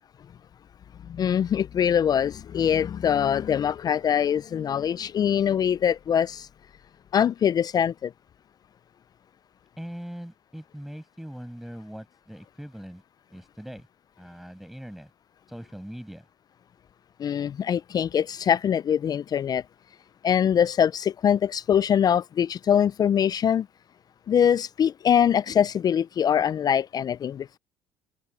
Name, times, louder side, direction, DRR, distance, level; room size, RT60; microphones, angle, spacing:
voice 1, 1.1-6.5 7.1-8.1 17.2-19.6 20.2-23.7 24.3-27.6, left 8 dB, 40° left, 0.5 m, -23 dB
voice 2, 9.8-13.0 13.3-13.9 14.2-15.1 15.5-16.2, equal, ahead, 6.8 m, -41 dB
hypercardioid pair, 75°, 10 cm